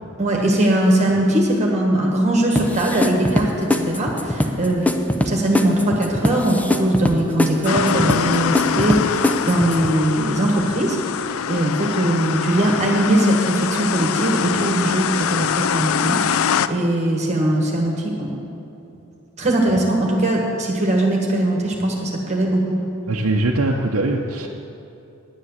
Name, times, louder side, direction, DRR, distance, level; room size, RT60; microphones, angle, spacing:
voice 1, 0.2-4.9 5.2-18.3 19.4-22.8, right 1 dB, 30° right, 0 dB, 1.5 m, -20 dB
sound 1, 2.6-9.9, left 1 dB, 5° left, 0.6 m, -23 dB
sound 2, 7.7-16.7, left 7 dB, 65° left, 0.4 m, -24 dB
voice 2, 23.1-24.5, right 2 dB, 70° right, -1 dB, 0.8 m, -21 dB
10.0 x 9.5 x 7.3 m, 2.9 s
head